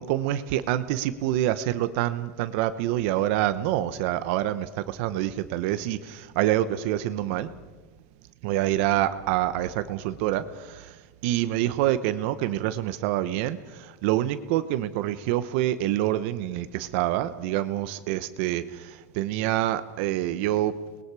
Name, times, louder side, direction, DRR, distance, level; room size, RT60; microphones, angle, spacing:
voice 1, 0.0-7.5 8.4-10.4 11.2-13.6 14.0-18.6 19.2-20.7, right 13 dB, 50° right, 12 dB, 0.9 m, -26 dB
28.5 x 21.0 x 4.8 m, 1.3 s
supercardioid pair, 165°, 9 cm